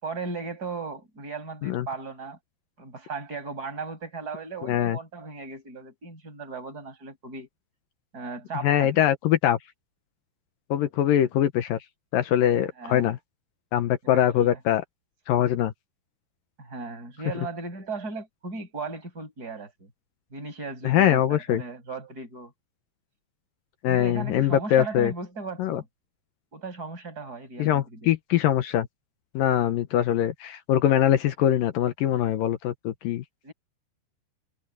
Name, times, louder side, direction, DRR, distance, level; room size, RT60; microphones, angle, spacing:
voice 1, 0.0-2.4 2.8-7.5 8.1-9.0 12.8-13.1 14.1-14.6 16.6-19.9 20.3-22.5 23.9-25.9 26.5-28.1 33.4-33.5, right 4 dB, 20° right, 7.5 m, -37 dB
voice 2, 4.6-5.0 8.6-9.6 10.7-11.8 12.1-13.2 13.7-14.8 15.3-15.7 20.8-21.6 23.8-25.1 25.6-25.8 27.6-28.9 29.3-33.2, left 11 dB, 70° left, 2.4 m, -23 dB
omnidirectional pair, 4.8 m